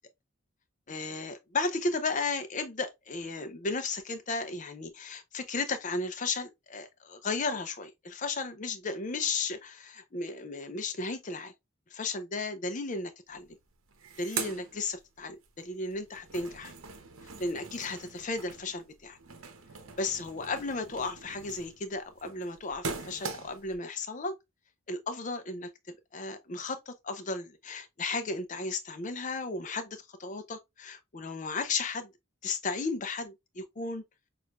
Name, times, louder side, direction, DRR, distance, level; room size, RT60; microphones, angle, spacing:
voice 1, 0.9-11.5 11.9-13.6 14.2-16.7 17.4-19.2 20.0-24.3 24.9-25.7 26.1-32.1 32.4-34.0, left 3 dB, 35° left, 0.5 m, -34 dB
sound 1, 13.3-13.4 13.7-15.5 15.9-23.8, right 5 dB, 65° right, 0.8 m, -42 dB
6.3 x 2.5 x 2.3 m
head